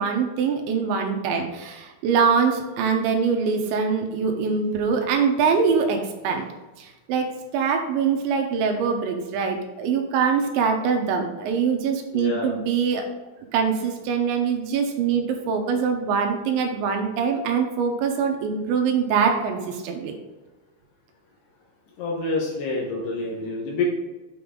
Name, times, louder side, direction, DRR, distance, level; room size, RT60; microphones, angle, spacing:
voice 1, 0.0-6.4 6.8-7.3 7.5-13.0 13.5-20.2, right 6 dB, 80° right, 3 dB, 3.0 m, -23 dB
voice 2, 12.1-12.6 22.0-23.8, left 3 dB, 70° left, -2 dB, 2.9 m, -27 dB
8.6 x 5.4 x 3.8 m, 1.1 s
omnidirectional pair, 5.6 m